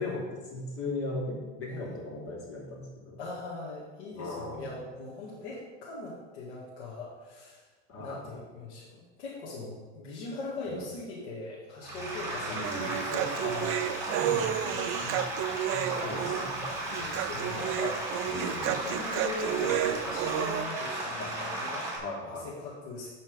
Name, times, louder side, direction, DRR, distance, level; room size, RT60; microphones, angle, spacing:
voice 1, 0.0-3.2 4.1-4.8 7.9-8.3 10.7-10.8 12.5-12.9 13.4-13.5 14.0-15.2 15.7-16.7 18.2-18.8 21.2-21.3 22.0-22.5, left 2 dB, 40° left, -2 dB, 3.0 m, -38 dB
voice 2, 3.2-7.7 8.0-13.7 14.3-15.3 16.9-18.3 18.7-21.9 22.2-23.1, left 2 dB, 80° left, -7 dB, 2.3 m, -40 dB
sound 1, 11.8-22.0, right 1 dB, 10° right, 3.0 m, -35 dB
Human voice, 12.6-20.6, right 11 dB, 40° right, 0.5 m, -31 dB
11.5 x 4.3 x 5.2 m, 1.4 s
supercardioid pair, 120°, 34 cm